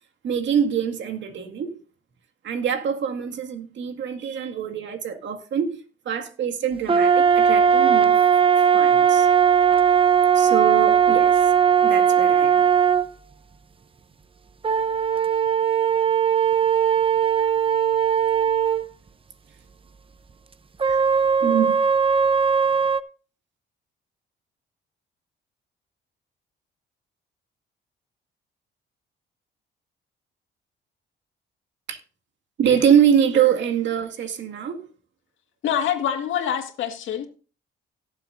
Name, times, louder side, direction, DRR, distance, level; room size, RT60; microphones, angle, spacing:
voice 1, 0.2-1.8 2.4-8.2 8.7-9.3 10.3-11.4 11.8-12.7 20.9-21.0 21.4-21.8 31.9-32.0 32.6-34.9, right 8 dB, 70° right, 2.0 m, -24 dB
sound 1, 6.9-13.1 14.6-18.9 20.8-23.0, right 7 dB, 25° right, 0.7 m, -18 dB
voice 2, 35.6-37.3, left 9 dB, 80° left, 2.0 m, -25 dB
17.5 x 7.5 x 2.6 m
cardioid pair, 90°, 20 cm